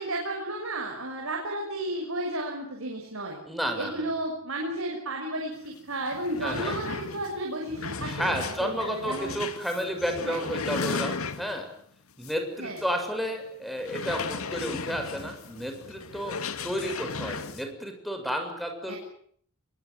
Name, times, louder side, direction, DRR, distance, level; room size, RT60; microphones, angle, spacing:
voice 1, 0.0-3.4 3.8-9.3 10.2-10.4 12.6-12.8 18.9-19.0, right 1 dB, 70° right, 1 dB, 6.5 m, -33 dB
voice 2, 3.5-4.1 6.4-6.8 8.0-11.7 12.2-19.0, equal, ahead, 4 dB, 7.0 m, -32 dB
sound 1, 5.7-5.8 6.0-11.7 12.2-12.4 12.8-12.9 13.8-17.7, left 4 dB, 90° left, 2.2 m, -35 dB
25.0 x 23.0 x 9.5 m, 0.62 s
head